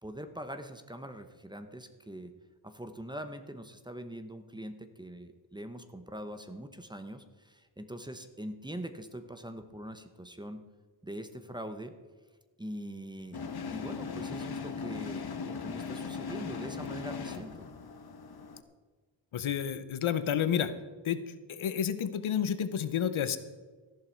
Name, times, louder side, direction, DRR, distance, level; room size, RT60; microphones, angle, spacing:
voice 1, 0.0-2.3 2.6-10.6 11.0-11.9 12.6-13.4 13.7-17.7, right 1 dB, 10° right, 8 dB, 0.8 m, -43 dB
sound 1, 13.3-18.6, left 5 dB, 50° left, 1.1 m, -38 dB
voice 2, 19.3-20.7 21.0-21.2 21.5-23.4, left 9 dB, 80° left, 12 dB, 1.0 m, -30 dB
13.5 x 11.0 x 4.5 m, 1.3 s
wide cardioid pair, 145°, 48 cm